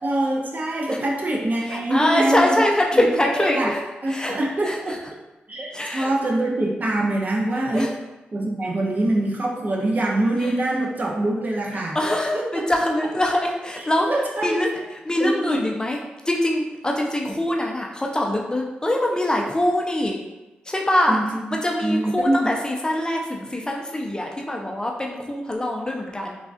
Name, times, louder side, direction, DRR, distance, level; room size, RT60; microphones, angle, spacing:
voice 1, 0.0-2.5 2.9-3.0 3.3-3.7 4.0-4.9 5.5-7.9 8.3-12.0 12.3-12.6 13.8-14.6 15.2-15.6 21.1-21.4 21.8-22.5, right 1 dB, 45° right, -1 dB, 0.6 m, -24 dB
voice 2, 1.7-3.8 4.1-4.4 4.6-5.0 5.7-6.1 7.7-7.9 10.4-10.5 11.9-14.1 14.4-14.7 15.0-16.0 16.2-20.2 20.7-21.2 21.5-26.4, left 1 dB, 20° left, -1 dB, 0.5 m, -23 dB
3.5 x 2.4 x 2.4 m, 1.0 s
supercardioid pair, 40°, 4 cm